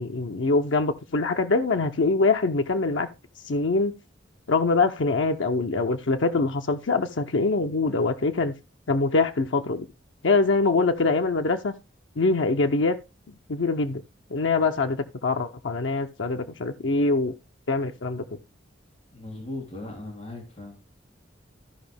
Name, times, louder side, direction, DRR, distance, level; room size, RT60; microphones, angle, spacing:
voice 1, 0.0-3.1 3.4-3.9 4.5-8.5 8.9-9.9 10.2-11.7 12.2-13.0 13.3-14.0 14.3-17.3 17.7-18.4, left 3 dB, 90° left, 0.7 m, -24 dB
voice 2, 19.1-20.9, left 2 dB, 40° left, 3.0 m, -38 dB
14.0 x 5.2 x 3.4 m
head